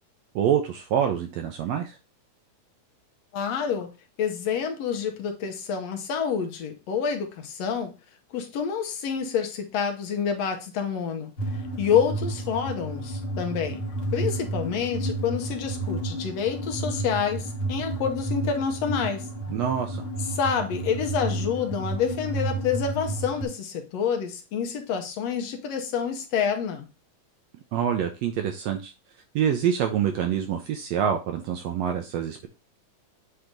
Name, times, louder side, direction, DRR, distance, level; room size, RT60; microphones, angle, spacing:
voice 1, 0.3-2.0 19.5-20.0 27.7-28.9 29.3-32.5, right 9 dB, 75° right, 1.6 m, -26 dB
voice 2, 3.3-3.9 4.2-7.9 8.3-13.8 14.1-19.3 20.3-26.9, left 7 dB, 70° left, 1.8 m, -28 dB
sound 1, 11.4-23.4, right 2 dB, 40° left, 1.0 m, -31 dB
8.0 x 2.9 x 5.1 m
omnidirectional pair, 3.5 m